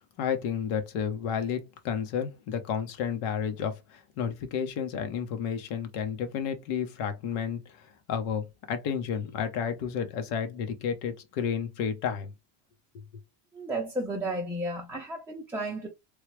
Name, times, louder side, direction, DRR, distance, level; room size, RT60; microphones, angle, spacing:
voice 1, 0.2-12.3, left 7 dB, 80° left, 1.1 m, -31 dB
voice 2, 13.5-15.9, right 1 dB, 5° right, 0.5 m, -33 dB
3.2 x 2.3 x 3.2 m
cardioid pair, 145°, 49 cm